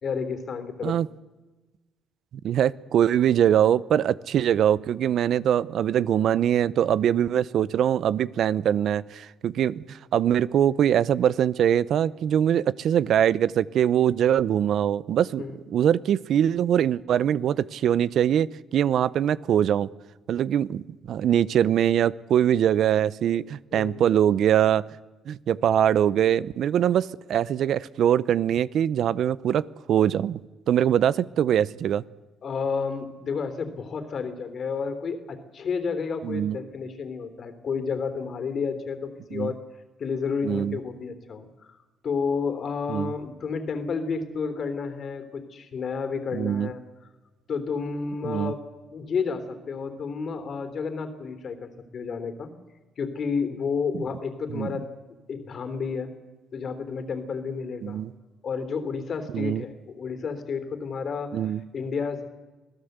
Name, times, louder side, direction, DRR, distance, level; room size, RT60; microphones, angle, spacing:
voice 1, 0.0-1.0 15.4-15.6 23.7-24.0 32.4-39.6 40.0-41.8 42.0-46.8 47.5-48.6 48.9-52.5 53.0-56.1 56.5-58.0 58.4-62.3, left 5 dB, 55° left, 10 dB, 3.4 m, -31 dB
voice 2, 2.4-19.9 20.3-24.8 25.3-30.4 30.7-32.0 36.2-36.6 39.3-39.5 40.4-40.8 42.9-43.1 46.3-46.7 48.2-48.5 54.5-54.7 57.8-58.1 59.3-59.6 61.3-61.6, right 10 dB, 70° right, 20 dB, 0.6 m, -23 dB
25.5 x 16.5 x 8.1 m, 1.2 s
cardioid pair, 90°, 0 cm